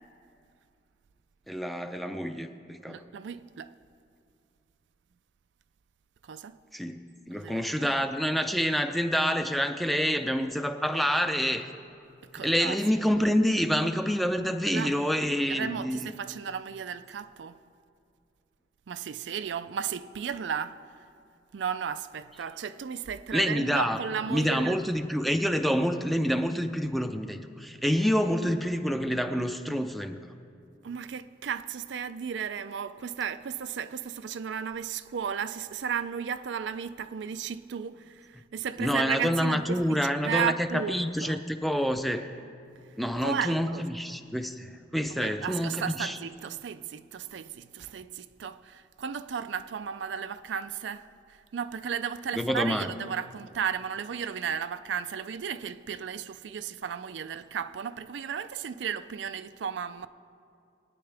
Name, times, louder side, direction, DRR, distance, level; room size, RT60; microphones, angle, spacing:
voice 1, 1.5-3.0 6.7-7.0 7.3-11.7 12.4-16.1 23.3-24.0 24.3-30.2 38.8-42.3 43.0-46.2 52.4-52.9, equal, ahead, 0.5 m, -27 dB
voice 2, 2.9-3.7 6.2-6.6 7.4-7.9 12.2-12.9 14.7-15.0 15.5-17.6 18.9-20.8 21.5-24.8 30.8-41.4 42.8-42.9 43.2-43.9 45.1-60.1, right 7 dB, 85° right, 0.4 m, -34 dB
22.0 x 9.6 x 3.4 m
head